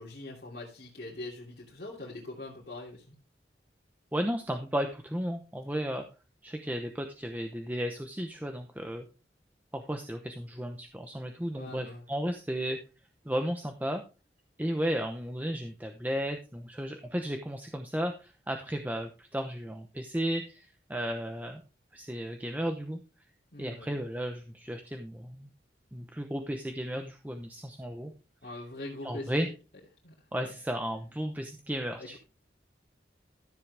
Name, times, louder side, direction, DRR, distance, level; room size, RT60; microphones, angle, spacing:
voice 1, 0.0-3.2 11.6-12.1 23.5-24.0 28.4-29.5 30.0-30.1 30.4-30.5 32.0-32.2, left 2 dB, 55° left, -6 dB, 2.9 m, -42 dB
voice 2, 4.1-6.0 6.4-9.1 9.7-12.8 13.2-14.0 14.6-21.6 21.9-23.0 23.6-25.5 25.9-28.1 29.0-29.5 30.3-32.2, equal, 10° right, 5 dB, 0.8 m, -34 dB
13.5 x 7.6 x 3.4 m, 0.31 s
head